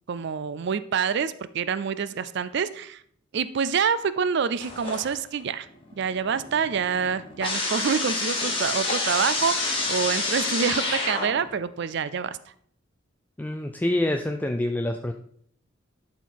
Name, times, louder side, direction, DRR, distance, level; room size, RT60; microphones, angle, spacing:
voice 1, 0.1-3.0 3.3-5.7 6.0-12.4, right 6 dB, 60° right, 15 dB, 0.4 m, -27 dB
sound 1, 4.6-5.4 5.8-11.6, left 3 dB, 25° left, 2.0 m, -28 dB
voice 2, 13.4-15.1, left 1 dB, 10° left, 5 dB, 0.4 m, -26 dB
11.5 x 4.4 x 4.6 m, 0.63 s
head